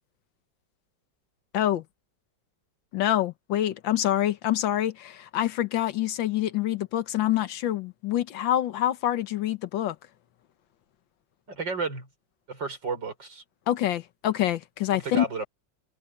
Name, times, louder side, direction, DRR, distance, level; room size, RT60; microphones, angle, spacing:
voice 1, 2.9-10.0 13.7-15.2, left 12 dB, 90° left, 1.7 m, -26 dB
voice 2, 11.5-12.1 12.5-13.4 14.9-15.5, right 3 dB, 75° right, 5.6 m, -32 dB
omnidirectional pair, 2.0 m